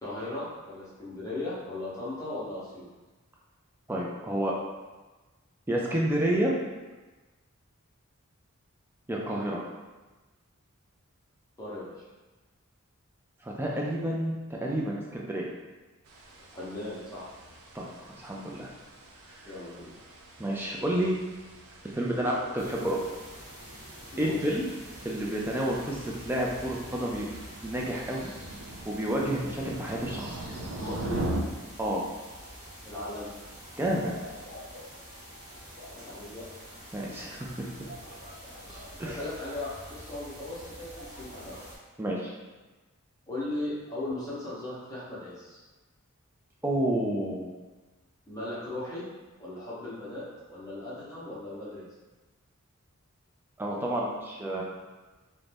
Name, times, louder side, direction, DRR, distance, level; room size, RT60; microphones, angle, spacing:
voice 1, 0.0-2.9 11.6-11.9 16.5-17.3 19.4-19.9 24.1-24.5 30.8-31.2 32.8-33.3 35.9-36.4 38.5-41.6 43.3-45.6 48.3-49.0 49.4-50.2 50.5-51.9, left 2 dB, 15° left, -9 dB, 0.7 m, -37 dB
voice 2, 3.9-4.5 5.7-6.5 9.1-9.6 13.4-14.4 14.6-15.5 17.7-18.7 20.4-21.1 21.9-23.0 24.2-24.6 25.0-27.3 27.6-28.3 28.9-30.4 31.8-32.0 33.8-34.1 36.9-37.4 39.0-39.2 42.0-42.3 46.6-47.5 53.6-54.6, right 1 dB, 10° right, -3 dB, 0.3 m, -29 dB
sound 1, 16.0-31.4, right 1 dB, 85° right, 0.4 m, -42 dB
sound 2, 22.6-41.8, equal, 35° right, 0.7 m, -46 dB
2.5 x 2.1 x 3.2 m, 1.2 s
head